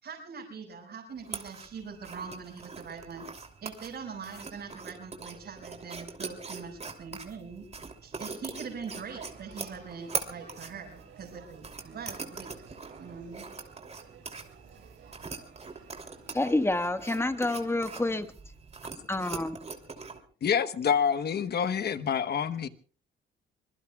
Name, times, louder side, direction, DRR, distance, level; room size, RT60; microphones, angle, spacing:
voice 1, 0.0-3.3 3.6-7.7 8.0-13.4, right 5 dB, 60° right, 6.0 m, -43 dB
sound 1, 1.2-20.2, right 4 dB, 35° right, 3.0 m, -42 dB
Male speech man speaking / Child speech kid speaking / Conversation, 8.9-16.7, right 7 dB, 80° right, 4.8 m, -54 dB
voice 2, 16.3-18.3 19.1-19.5, left 2 dB, 10° left, 1.6 m, -28 dB
voice 3, 20.4-22.7, left 7 dB, 55° left, 1.1 m, -27 dB
25.5 x 21.5 x 2.4 m
cardioid pair, 90°, 20 cm